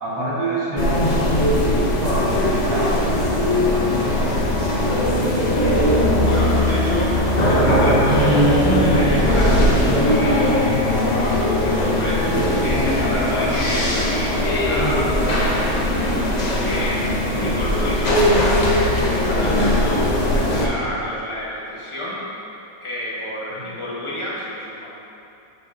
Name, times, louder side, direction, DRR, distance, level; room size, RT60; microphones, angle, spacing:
voice 1, 0.0-3.0 3.4-4.7 13.2-13.9 23.5-23.7, right 1 dB, 70° right, -8 dB, 2.2 m, -28 dB
sound 1, 0.8-20.7, left 1 dB, 70° left, 0.4 m, -19 dB
voice 2, 6.2-22.2 22.8-24.9, left 1 dB, 20° left, -6 dB, 1.0 m, -30 dB
7.6 x 6.8 x 2.7 m, 2.8 s
omnidirectional pair, 1.8 m